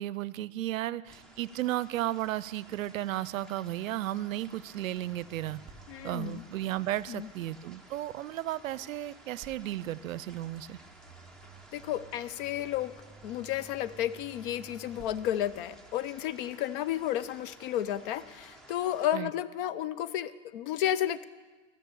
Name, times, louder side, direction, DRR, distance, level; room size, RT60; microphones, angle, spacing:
voice 1, 0.0-5.6 6.0-10.8 19.1-19.3, right 14 dB, 80° right, 20 dB, 0.5 m, -34 dB
sound 1, 1.0-19.1, right 1 dB, ahead, 0.8 m, -55 dB
sound 2, 5.0-8.2 9.4-16.3, right 4 dB, 20° right, 2.5 m, -55 dB
voice 2, 5.9-6.4 7.1-7.3 11.7-12.9 13.2-21.3, left 11 dB, 45° left, 15 dB, 0.5 m, -32 dB
15.0 x 6.4 x 6.9 m, 1.3 s
hypercardioid pair, 120°, 39 cm